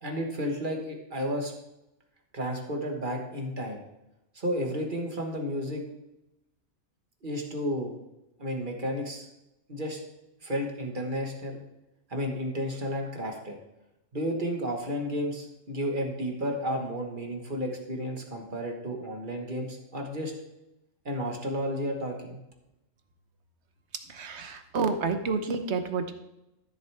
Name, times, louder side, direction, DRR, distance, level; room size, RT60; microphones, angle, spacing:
voice 1, 0.0-1.5 2.3-3.8 4.3-5.8 7.2-7.9 8.4-9.3 9.7-10.0 10.4-11.6 12.1-13.6 14.1-20.3 21.0-22.4, equal, 40° right, 1 dB, 1.6 m, -32 dB
voice 2, 24.1-26.1, right 4 dB, 60° right, 8 dB, 1.2 m, -29 dB
13.5 x 7.7 x 3.4 m, 0.91 s
omnidirectional pair, 1.3 m